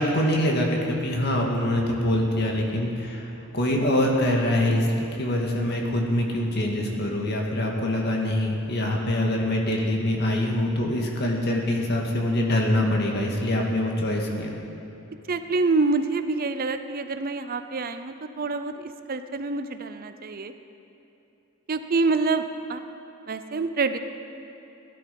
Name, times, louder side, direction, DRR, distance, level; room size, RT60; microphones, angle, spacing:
voice 1, 0.0-4.9 5.2-14.5, left 1 dB, 50° left, 0 dB, 2.0 m, -24 dB
voice 2, 15.3-20.5 21.7-22.8 23.3-24.0, right 3 dB, 45° right, 10 dB, 0.5 m, -26 dB
17.0 x 12.0 x 5.4 m, 2.9 s
head